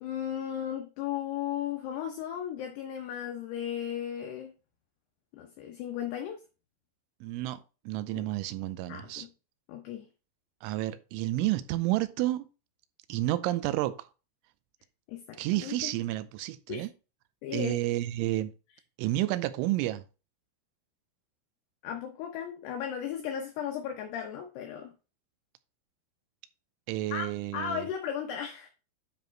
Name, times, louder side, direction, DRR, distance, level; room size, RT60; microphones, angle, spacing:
voice 1, 0.0-4.5 5.3-6.4 8.1-8.2 8.9-9.3 9.7-10.1 15.1-15.8 16.7-16.9 17.4-17.8 21.8-24.9 27.1-28.7, left 9 dB, 75° left, 2.6 m, -35 dB
voice 2, 7.2-9.3 10.6-12.5 13.1-14.1 15.4-16.9 17.5-18.5 19.0-20.0 26.9-27.9, right 16 dB, 90° right, 3.1 m, -30 dB
9.8 x 3.6 x 4.5 m
omnidirectional pair, 5.5 m